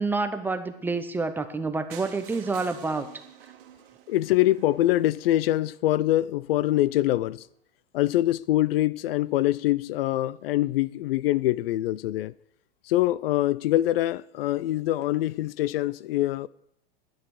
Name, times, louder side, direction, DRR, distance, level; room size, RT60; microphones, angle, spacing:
voice 1, 0.0-3.1, right 3 dB, 5° right, 0.8 m, -28 dB
sound 1, 1.9-5.8 6.4-6.5 6.8-6.9 7.2-7.3 7.4-7.5, right 11 dB, 65° right, 1.9 m, -49 dB
voice 2, 4.1-7.4 7.9-12.3 12.9-16.5, left 15 dB, 70° left, 0.5 m, -24 dB
11.5 x 10.5 x 7.0 m
supercardioid pair, 145°, 30 cm